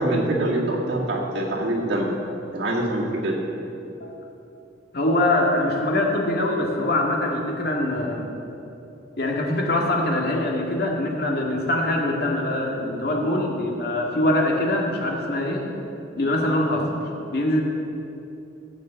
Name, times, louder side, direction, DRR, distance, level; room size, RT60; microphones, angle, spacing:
voice 1, 0.0-2.1 2.5-3.4, right 1 dB, 65° right, -5 dB, 2.5 m, -24 dB
voice 2, 3.8-4.1 4.9-8.3 9.2-15.6 16.2-16.9 17.3-17.6, left 1 dB, 55° left, -1 dB, 1.9 m, -23 dB
14.5 x 5.3 x 8.1 m, 2.9 s
head